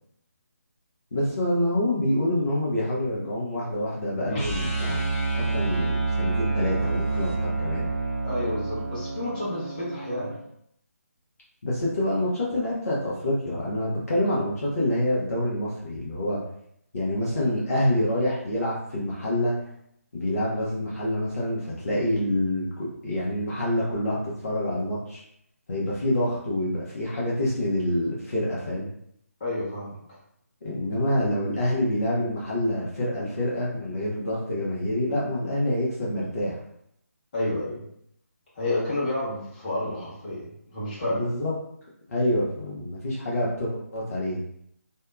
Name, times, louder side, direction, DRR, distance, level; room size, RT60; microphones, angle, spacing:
voice 1, 1.1-5.0 5.3-7.9 11.6-16.4 16.9-19.5 20.1-25.2 25.7-28.9 30.6-36.6 41.2-41.5 42.1-44.4, left 1 dB, 70° left, -7 dB, 0.8 m, -27 dB
sound 1, 4.3-10.4, right 3 dB, 15° left, 0.6 m, -28 dB
voice 2, 8.2-10.3 29.4-30.0 37.3-37.8 38.5-41.3, left 1 dB, 35° left, -8 dB, 1.3 m, -30 dB
2.7 x 2.2 x 2.3 m, 0.72 s
figure-of-eight pair, 155°, 8 cm